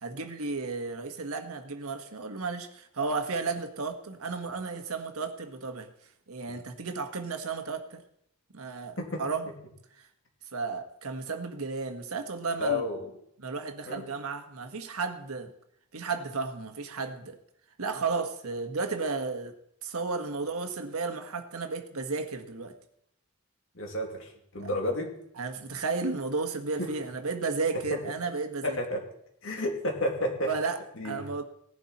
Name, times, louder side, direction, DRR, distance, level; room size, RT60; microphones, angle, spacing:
voice 1, 0.0-5.9 6.3-8.0 8.5-9.5 10.0-10.1 10.5-12.8 13.4-15.5 15.9-17.4 17.8-22.8 24.6-24.7 25.4-28.8 30.4-31.4, right 4 dB, 85° right, 1.5 m, -33 dB
voice 2, 12.6-13.1 13.9-14.0 23.8-24.3 24.5-25.1 26.8-26.9 28.6-29.0 29.4-30.5 31.0-31.3, left 1 dB, 65° left, 2.9 m, -30 dB
18.0 x 11.0 x 4.3 m
head